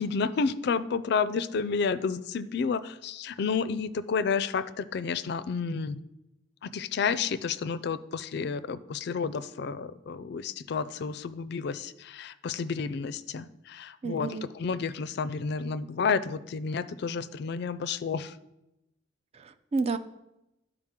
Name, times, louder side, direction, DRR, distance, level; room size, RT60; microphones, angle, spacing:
voice 1, 0.0-6.0 6.6-18.4, left 5 dB, 60° left, 14 dB, 0.4 m, -30 dB
voice 2, 14.0-14.5 19.3-20.0, right 4 dB, 35° right, 12 dB, 0.4 m, -31 dB
11.5 x 4.8 x 3.6 m, 0.90 s
head